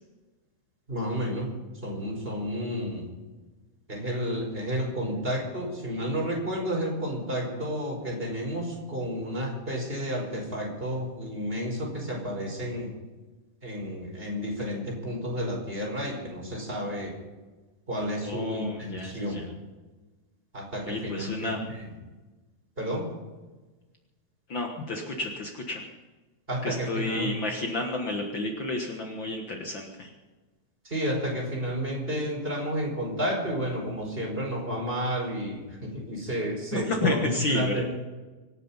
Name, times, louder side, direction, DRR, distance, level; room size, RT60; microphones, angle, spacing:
voice 1, 0.9-1.5 1.8-3.1 3.9-12.9 13.6-17.2 17.9-19.4 20.5-21.8 22.8-23.1 26.5-27.3 30.8-37.8, equal, 15° right, -1 dB, 4.6 m, -31 dB
voice 2, 18.2-19.5 20.8-21.6 24.5-25.8 26.6-30.1 36.7-37.8, left 2 dB, 75° left, 2 dB, 1.0 m, -31 dB
25.5 x 9.7 x 5.6 m, 1.2 s
omnidirectional pair, 4.5 m